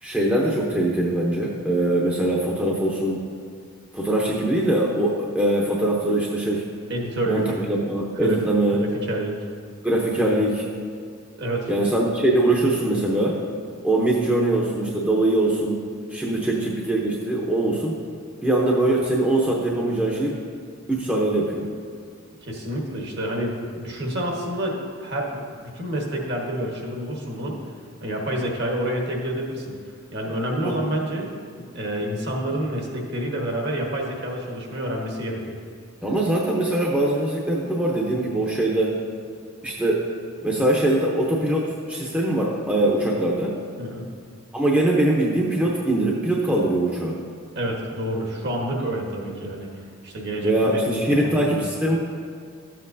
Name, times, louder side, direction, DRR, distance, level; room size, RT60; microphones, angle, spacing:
voice 1, 0.0-3.3 3.9-6.6 7.3-8.8 9.8-10.7 11.7-13.4 13.8-15.8 16.1-17.9 18.4-20.4 20.9-21.7 30.6-30.8 36.0-39.0 39.6-40.1 40.4-43.6 44.5-47.2 50.4-52.0, right 1 dB, 5° right, -4 dB, 0.7 m, -22 dB
voice 2, 6.9-7.6 8.1-8.4 8.7-9.4 11.4-11.7 16.3-16.5 22.4-27.6 28.0-29.7 30.1-31.3 31.7-35.6 43.8-44.1 47.5-51.6, right 1 dB, 50° right, -1 dB, 1.3 m, -28 dB
13.0 x 7.6 x 2.7 m, 2.2 s
head